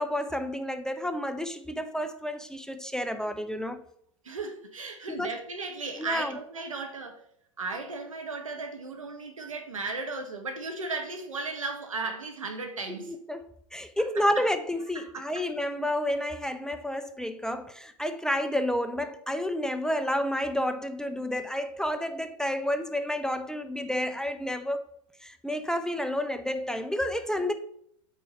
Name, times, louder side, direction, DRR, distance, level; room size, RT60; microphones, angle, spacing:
voice 1, 0.0-3.8 5.1-5.3 6.0-6.3 12.9-24.9 25.2-27.5, left 1 dB, 5° left, 0.4 m, -30 dB
voice 2, 4.2-7.2 7.6-13.2 14.0-14.2 15.0-15.2, right 3 dB, 90° right, 1.2 m, -35 dB
5.4 x 4.4 x 5.4 m
hypercardioid pair, 95°, 17 cm